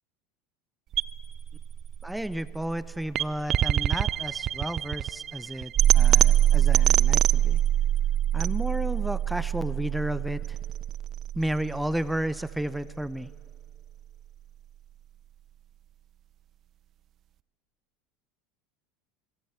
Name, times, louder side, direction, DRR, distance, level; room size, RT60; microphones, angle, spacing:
sound 1, 0.9-13.0, right 11 dB, 45° right, 0.6 m, -24 dB
voice 1, 2.0-7.6 8.3-10.6 11.4-13.3, right 1 dB, 5° right, 17 dB, 0.7 m, -32 dB
26.5 x 23.0 x 8.0 m, 2.2 s
hypercardioid pair, 85°, 0 cm